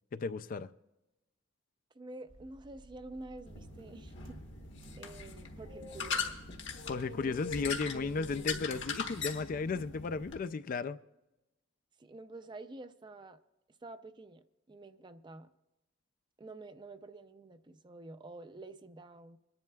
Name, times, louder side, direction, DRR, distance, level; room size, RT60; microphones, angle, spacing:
voice 1, 0.1-0.7 6.9-11.0, left 4 dB, 45° left, 0.3 m, -35 dB
voice 2, 1.9-4.2 5.0-6.4 9.7-9.8 12.0-13.4 13.8-15.5 16.4-19.4, right 2 dB, 25° right, 0.4 m, -49 dB
sound 1, 2.3-8.9, right 1 dB, 65° right, 1.7 m, -57 dB
sound 2, 3.5-10.4, left 5 dB, 60° left, 1.2 m, -40 dB
26.5 x 10.5 x 2.3 m
head